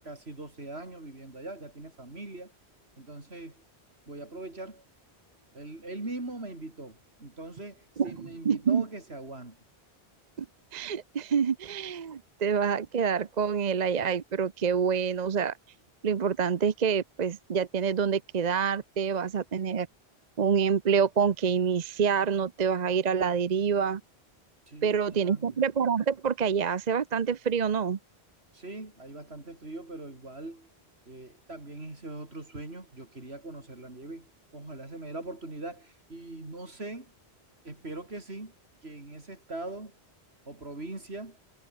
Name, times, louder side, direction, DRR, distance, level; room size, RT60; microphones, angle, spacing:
voice 1, 0.0-2.5 3.0-3.6 4.1-4.8 5.5-9.6 24.7-25.6 28.5-30.7 31.1-37.1 37.6-38.5 38.8-40.0 40.4-41.4, right 2 dB, 75° right, 4.8 m, -41 dB
voice 2, 8.4-8.8 10.4-10.5 10.7-15.5 16.0-19.9 20.4-24.0 24.8-28.0, right 6 dB, 45° right, 0.8 m, -27 dB
omnidirectional pair, 1.1 m